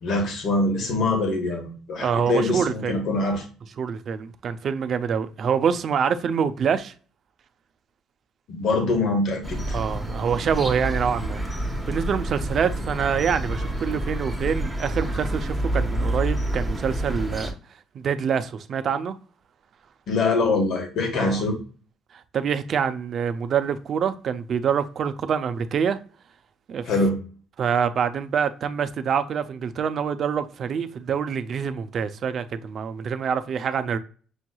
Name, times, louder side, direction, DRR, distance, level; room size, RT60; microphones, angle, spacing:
voice 1, 0.0-3.4 8.5-9.8 20.1-21.5 26.8-27.2, left 2 dB, 60° left, 1.3 m, -24 dB
voice 2, 2.0-3.0 3.8-6.9 9.7-11.6 11.9-17.5 17.9-19.2 21.1-21.4 22.1-26.0 26.7-26.9 27.6-34.0, right 7 dB, 45° right, 0.4 m, -26 dB
sound 1, 9.4-17.5, right 1 dB, ahead, 0.9 m, -28 dB
6.3 x 3.0 x 2.3 m
cardioid pair, 125°, 0 cm